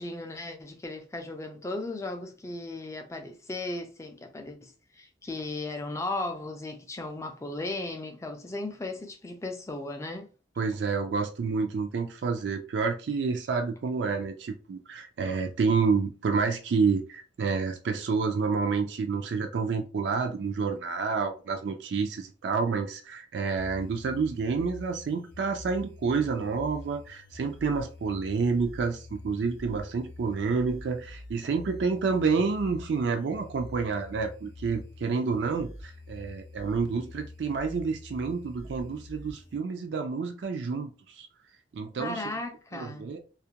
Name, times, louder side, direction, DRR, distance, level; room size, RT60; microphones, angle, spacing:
voice 1, 0.0-10.3 42.0-43.1, left 2 dB, 15° left, 0.3 m, -36 dB
voice 2, 10.6-41.3 41.7-42.2 42.7-43.2, right 4 dB, 70° right, 0.4 m, -29 dB
sound 1, 23.6-39.6, left 2 dB, 65° left, 0.6 m, -46 dB
2.4 x 2.1 x 2.8 m
head